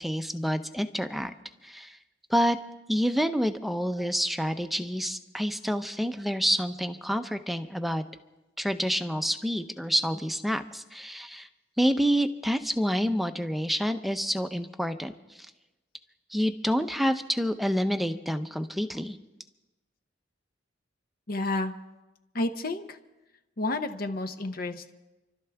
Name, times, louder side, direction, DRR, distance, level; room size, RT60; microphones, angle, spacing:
voice 1, 0.0-1.3 1.6-2.0 2.3-2.6 2.9-8.0 8.6-11.5 11.8-15.5 16.3-19.2, equal, ahead, 8 dB, 0.7 m, -28 dB
voice 2, 21.3-21.7 22.3-23.0 23.6-24.9, left 2 dB, 50° left, 8 dB, 0.8 m, -30 dB
29.5 x 12.5 x 3.5 m, 1.1 s
head